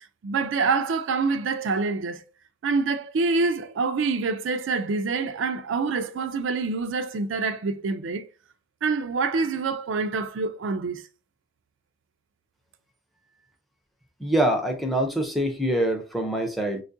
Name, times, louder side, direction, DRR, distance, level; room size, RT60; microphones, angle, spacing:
voice 1, 0.0-2.2 2.6-8.3 8.8-11.0, right 4 dB, 70° right, 0.4 m, -26 dB
voice 2, 14.2-16.8, right 1 dB, ahead, 0.5 m, -24 dB
4.3 x 2.4 x 2.6 m
head